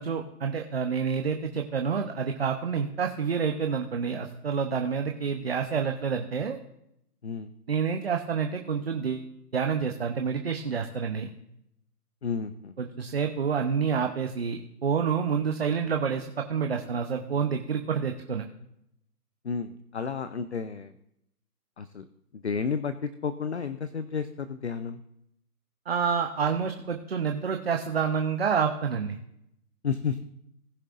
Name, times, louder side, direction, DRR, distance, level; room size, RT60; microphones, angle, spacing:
voice 1, 0.0-6.6 7.7-11.3 12.8-18.5 25.9-29.2, right 6 dB, 40° right, 4 dB, 0.7 m, -28 dB
voice 2, 12.2-12.7 19.4-20.9 21.8-22.1 22.3-25.0 29.8-30.2, left 6 dB, 45° left, 11 dB, 0.5 m, -32 dB
19.5 x 6.5 x 2.5 m, 0.81 s
hypercardioid pair, 165°, 47 cm